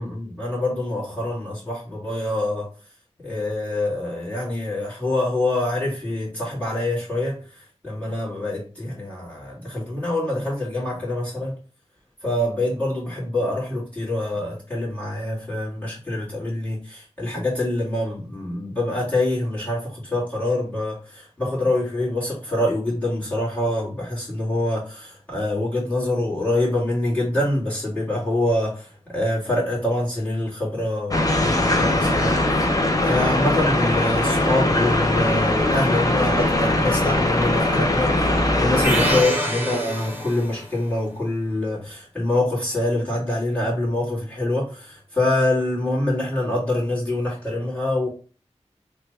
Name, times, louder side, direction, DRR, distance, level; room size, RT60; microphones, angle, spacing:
voice 1, 0.0-2.7 3.2-11.6 12.2-32.6 33.0-48.1, left 1 dB, 15° left, 1.9 m, -25 dB
sound 1, 31.1-39.2, left 1 dB, 30° left, 0.7 m, -21 dB
sound 2, 38.8-40.7, right 1 dB, 15° right, 1.0 m, -26 dB
3.2 x 2.3 x 4.3 m
wide cardioid pair, 45°, 12 cm